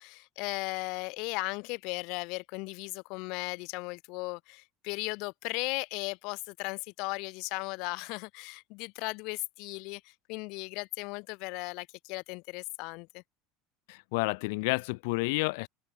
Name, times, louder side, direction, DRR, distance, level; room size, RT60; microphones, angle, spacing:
voice 1, 0.0-13.2, left 28 dB, 50° left, 7.6 m, -36 dB
voice 2, 13.9-15.7, left 27 dB, 65° left, 0.7 m, -30 dB
cardioid pair, 180°, 0 cm